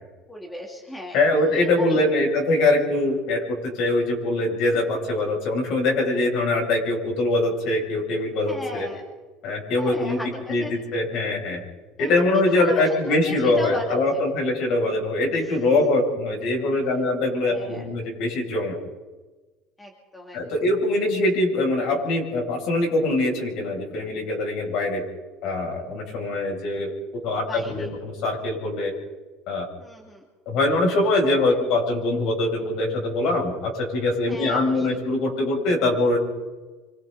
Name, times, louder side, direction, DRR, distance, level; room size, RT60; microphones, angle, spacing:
voice 1, 0.3-2.0 4.9-5.0 8.4-9.0 9.8-10.7 12.0-14.2 15.3-15.9 17.4-17.9 19.8-20.6 27.4-27.9 29.8-30.2 31.5-31.6 34.3-35.0, left 1 dB, 10° left, 0 dB, 2.6 m, -37 dB
voice 2, 1.1-8.9 9.4-10.2 10.5-11.6 12.0-18.8 20.3-25.0 25.4-26.9 27.2-28.9 29.5-29.7 30.5-36.2, left 2 dB, 60° left, -1 dB, 7.3 m, -23 dB
26.0 x 26.0 x 4.1 m, 1.2 s
cardioid pair, 150°, 0 cm